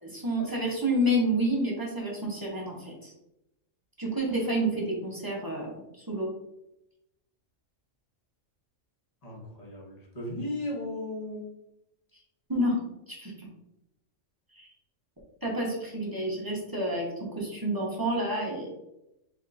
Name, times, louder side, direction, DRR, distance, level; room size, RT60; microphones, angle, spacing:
voice 1, 0.0-3.1 4.0-5.8 6.1-6.3 12.5-12.8 13.1-13.5 14.6-14.7 15.4-18.7, right 1 dB, 20° right, -3 dB, 0.7 m, -29 dB
voice 2, 9.2-11.5, left 1 dB, 30° left, -3 dB, 1.2 m, -36 dB
4.2 x 3.5 x 2.5 m, 0.86 s
omnidirectional pair, 1.3 m